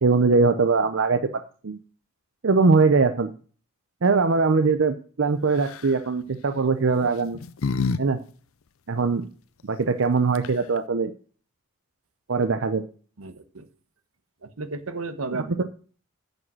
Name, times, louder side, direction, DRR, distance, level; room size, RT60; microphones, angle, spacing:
voice 1, 0.0-1.2 1.6-1.8 2.4-3.3 4.0-7.4 8.0-8.2 8.9-9.2 9.6-11.1 12.3-12.8, right 4 dB, 60° right, 9 dB, 0.6 m, -21 dB
sound 1, 5.5-6.0 6.9-8.0 8.3-8.4 10.0-10.1 10.3-10.8, left 4 dB, 70° left, 0.6 m, -28 dB
voice 2, 13.2-13.7 14.4-15.6, right 3 dB, 80° right, 11 dB, 1.1 m, -33 dB
9.7 x 5.4 x 6.0 m, 0.40 s
head